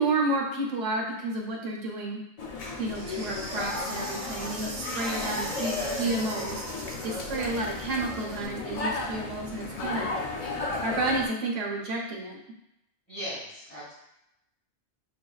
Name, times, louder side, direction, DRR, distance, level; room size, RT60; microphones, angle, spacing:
voice 1, 0.0-2.2 2.8-6.6 7.0-10.1 10.8-12.4, right 2 dB, 85° right, -2 dB, 1.2 m, -30 dB
sound 1, 2.4-11.3, left 3 dB, 60° left, 0.4 m, -34 dB
Insect, 2.9-8.5, right 3 dB, 70° right, 1.0 m, -40 dB
voice 2, 4.9-5.4 5.7-6.1 7.3-7.8 13.1-13.9, equal, 5° left, -12 dB, 1.4 m, -41 dB
6.3 x 2.6 x 2.3 m, 0.84 s
omnidirectional pair, 1.2 m